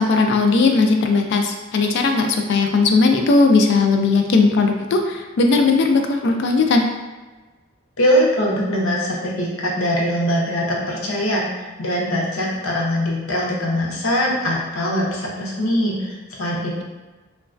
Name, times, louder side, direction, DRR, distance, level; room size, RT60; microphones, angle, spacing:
voice 1, 0.0-6.9, left 3 dB, 55° left, 4 dB, 0.3 m, -17 dB
voice 2, 8.0-16.8, equal, 85° left, -3 dB, 0.7 m, -22 dB
3.0 x 2.2 x 2.4 m, 1.2 s
head